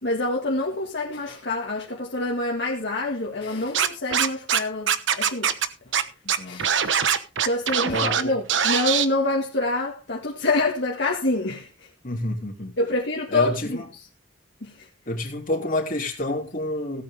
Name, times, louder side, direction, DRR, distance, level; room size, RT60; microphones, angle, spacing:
voice 1, 0.0-5.6 6.5-7.0 7.4-11.7 12.8-13.8 14.6-14.7, left 2 dB, 65° left, 1.9 m, -26 dB
Scratching (performance technique), 3.7-4.6 4.9-5.7 5.9-6.0 6.3-8.2 8.5-9.1, right 8 dB, 80° right, 1.1 m, -22 dB
voice 2, 6.2-6.7 7.9-8.3 12.0-12.8 13.3-13.9 15.1-17.0, left 1 dB, 45° left, 3.1 m, -29 dB
17.0 x 8.8 x 3.5 m
head